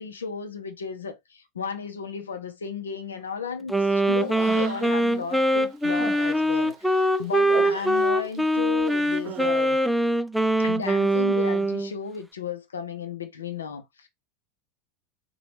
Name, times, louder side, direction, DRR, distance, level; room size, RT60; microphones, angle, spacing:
voice 1, 0.0-9.8 10.6-14.1, left 6 dB, 80° left, 0.6 m, -34 dB
Wind instrument woodwind instrument, 3.7-11.9, right 1 dB, ahead, 0.3 m, -23 dB
Human voice, 4.1-5.1 5.5-8.5 8.8-9.6, right 6 dB, 45° right, 0.8 m, -39 dB
2.9 x 2.2 x 3.2 m
figure-of-eight pair, 85°, 0 cm